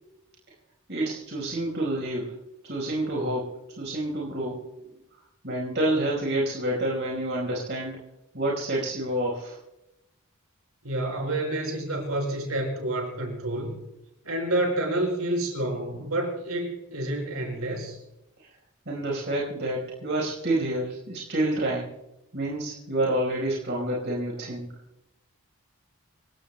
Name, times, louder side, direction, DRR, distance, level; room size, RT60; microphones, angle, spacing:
voice 1, 0.9-2.3 2.6-3.5 3.8-4.6 5.4-8.0 8.3-9.6 18.9-21.9 22.3-24.7, right 1 dB, 50° right, -3 dB, 4.6 m, -28 dB
voice 2, 10.8-13.8 14.3-18.0, right 1 dB, 70° right, 2 dB, 5.3 m, -29 dB
27.5 x 16.5 x 2.2 m, 0.90 s
head